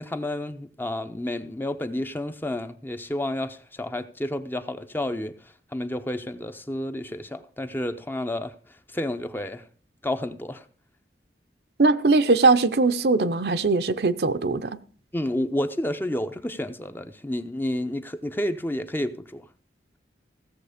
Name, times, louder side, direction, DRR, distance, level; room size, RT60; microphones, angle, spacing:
voice 1, 0.0-8.5 8.9-9.7 10.0-10.7 15.1-19.5, left 1 dB, 10° left, 0.6 m, -30 dB
voice 2, 11.8-14.8, right 3 dB, 60° right, 0.7 m, -20 dB
16.0 x 7.2 x 5.0 m
head